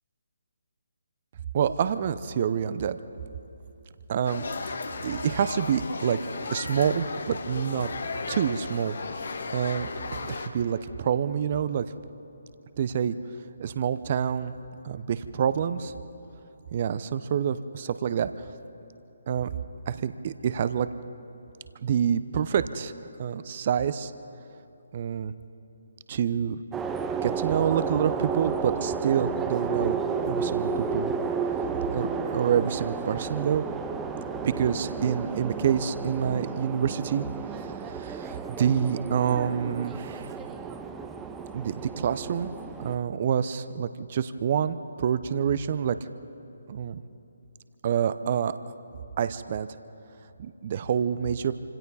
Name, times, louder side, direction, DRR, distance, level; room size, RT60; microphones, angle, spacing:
voice 1, 1.5-3.0 4.1-4.8 5.0-6.2 6.5-7.9 8.3-9.0 9.5-11.9 12.8-13.2 13.6-14.5 14.8-15.9 16.7-18.3 19.3-19.5 19.9-20.9 21.8-22.9 23.2-24.1 24.9-25.3 26.1-26.6 27.2-30.0 30.2-31.1 31.9-33.7 34.4-37.3 37.5-40.4 41.5-42.5 42.8-46.0 46.7-47.0 47.8-48.6 49.2-49.7 50.4-51.5, right 8 dB, 40° right, 13 dB, 0.8 m, -27 dB
sound 1, 4.2-10.5, left 4 dB, 60° left, 1.5 m, -35 dB
sound 2, 26.7-43.0, right 5 dB, 10° right, 0.8 m, -32 dB
27.5 x 26.0 x 4.2 m, 3.0 s
figure-of-eight pair, 145°, 0 cm